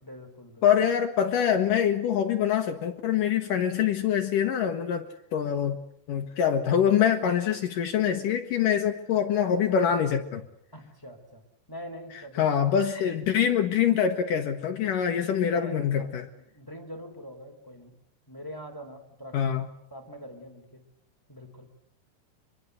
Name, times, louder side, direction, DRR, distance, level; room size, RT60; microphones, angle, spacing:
voice 1, 0.0-0.6 10.7-11.4 11.7-12.6 15.5-16.1 16.5-17.9 18.3-19.5 19.9-20.8 21.3-21.7, equal, 5° left, 2.8 m, -43 dB
voice 2, 0.6-5.1 5.3-5.8 6.1-10.4 12.3-16.3 19.3-19.7, left 8 dB, 65° left, 2.2 m, -24 dB
25.0 x 22.5 x 8.1 m
omnidirectional pair, 5.3 m